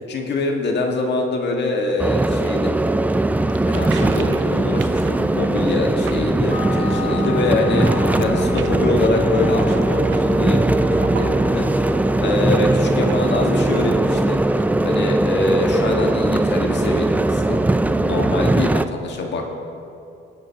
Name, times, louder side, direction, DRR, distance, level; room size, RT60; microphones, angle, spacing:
voice 1, 0.1-2.7 3.7-19.5, left 3 dB, 60° left, 1 dB, 1.6 m, -24 dB
sound 1, 2.0-18.9, right 2 dB, 10° right, 0.3 m, -19 dB
sound 2, 3.3-18.0, right 7 dB, 80° right, 0.6 m, -40 dB
sound 3, 6.5-18.8, left 9 dB, 40° left, 1.3 m, -37 dB
18.5 x 10.5 x 2.8 m, 2.7 s
cardioid pair, 90°, 20 cm